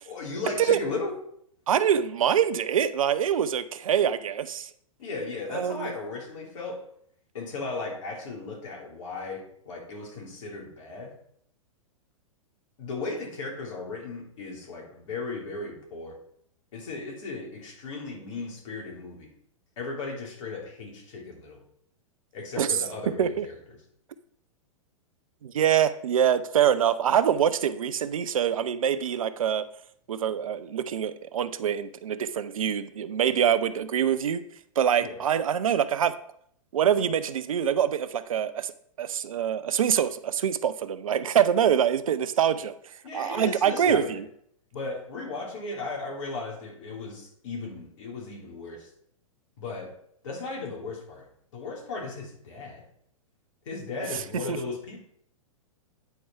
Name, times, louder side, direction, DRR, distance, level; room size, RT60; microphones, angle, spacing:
voice 1, 0.0-1.1 5.0-6.8 7.3-11.1 12.8-16.2 16.7-19.3 19.8-21.6 22.3-23.6 35.0-35.2 43.0-44.2 44.7-48.9 49.6-49.9 50.2-51.2 51.5-52.8 53.6-55.0, left 3 dB, 60° left, -1 dB, 3.3 m, -36 dB
voice 2, 1.7-4.7 5.5-5.9 22.6-22.7 23.2-23.5 25.4-29.7 30.1-34.4 34.8-36.2 36.7-38.7 39.0-42.7 43.1-44.2 54.5-54.6, right 9 dB, 75° right, 13 dB, 0.7 m, -25 dB
9.4 x 4.6 x 5.5 m, 0.68 s
hypercardioid pair, 110°, 18 cm